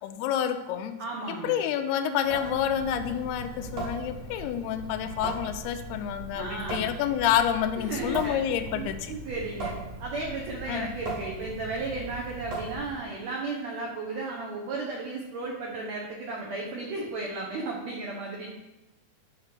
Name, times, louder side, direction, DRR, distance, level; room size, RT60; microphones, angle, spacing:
voice 1, 0.0-0.9 1.3-9.1 10.7-10.9, left 10 dB, 80° left, 7 dB, 2.7 m, -28 dB
voice 2, 1.0-1.6 6.3-6.9 7.9-8.4 8.7-18.5, right 3 dB, 70° right, -1 dB, 1.6 m, -34 dB
Water tap faucet / Sink (filling or washing) / Drip, 2.2-13.1, right 2 dB, 50° right, 2.3 m, -39 dB
11.0 x 4.5 x 6.7 m, 1.0 s
omnidirectional pair, 4.7 m